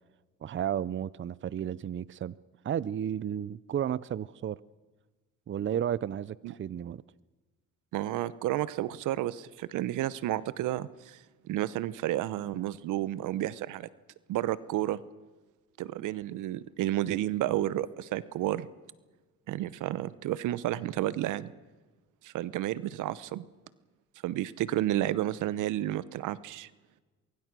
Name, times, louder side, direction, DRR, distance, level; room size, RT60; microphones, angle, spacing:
voice 1, 0.4-2.3 2.6-4.6 5.5-7.0, right 9 dB, 40° right, 0.6 m, -33 dB
voice 2, 7.9-11.2 11.5-13.9 14.3-15.0 15.8-18.7 19.5-21.5 22.2-23.4 24.2-26.7, right 14 dB, 90° right, 0.9 m, -31 dB
23.0 x 23.0 x 6.2 m
cardioid pair, 90°, 30 cm